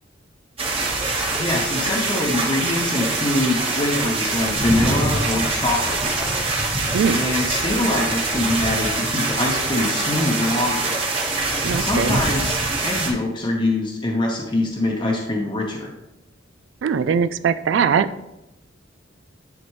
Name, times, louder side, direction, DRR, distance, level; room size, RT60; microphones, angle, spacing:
sound 1, 0.6-13.1, right 2 dB, 30° right, 1.4 m, -24 dB
voice 1, 1.3-6.0 7.1-10.9 11.8-12.5 12.8-15.9, left 1 dB, 25° left, -2 dB, 0.9 m, -24 dB
voice 2, 11.6-12.2 16.8-18.1, right 6 dB, 75° right, 13 dB, 0.3 m, -20 dB
11.0 x 4.2 x 3.1 m, 0.90 s
head